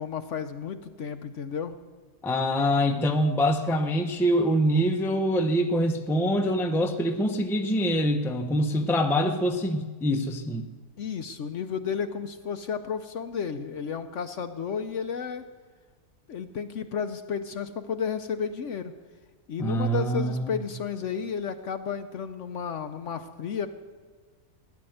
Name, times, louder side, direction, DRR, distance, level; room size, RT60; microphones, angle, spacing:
voice 1, 0.0-1.7 11.0-15.4 16.3-18.9 19.5-23.7, left 6 dB, 60° left, 8 dB, 0.9 m, -32 dB
voice 2, 2.2-10.7 19.6-20.6, equal, ahead, 4 dB, 0.5 m, -25 dB
16.5 x 10.5 x 7.9 m, 1.4 s
omnidirectional pair, 1.7 m